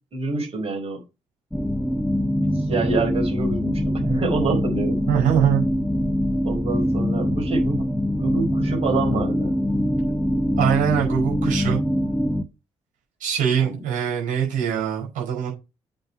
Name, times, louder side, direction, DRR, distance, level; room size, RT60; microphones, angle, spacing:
voice 1, 0.1-1.0 2.5-5.0 6.4-7.9 8.2-9.5 13.6-13.8, right 3 dB, 40° right, 5.2 m, -26 dB
sound 1, 1.5-12.4, equal, 5° left, 1.0 m, -23 dB
voice 2, 5.1-5.6 10.6-11.8 13.2-15.5, right 9 dB, 60° right, 5.0 m, -22 dB
7.8 x 5.4 x 5.0 m
figure-of-eight pair, 45°, 15 cm